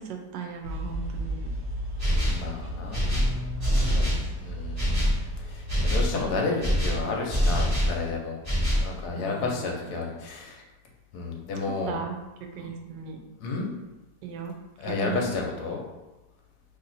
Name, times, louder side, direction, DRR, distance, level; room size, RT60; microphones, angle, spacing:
voice 1, 0.0-1.5 9.1-10.1 11.6-12.2 12.5-13.2 14.2-14.5 14.8-15.3, right 6 dB, 85° right, 3 dB, 1.3 m, -37 dB
sound 1, 0.6-6.4, right 1 dB, 60° right, 1.0 m, -35 dB
sound 2, 2.0-2.5 2.9-4.3 4.8-5.2 5.7-6.1 6.6-8.0 8.4-8.9, equal, 20° right, 1.5 m, -24 dB
voice 2, 2.3-4.1 4.4-5.2 5.4-8.4 8.8-10.6 11.1-12.0 12.6-12.7 13.4-13.7 14.8-15.8, left 3 dB, 70° left, 0 dB, 1.1 m, -31 dB
3.0 x 2.8 x 3.9 m, 1.1 s
omnidirectional pair, 1.9 m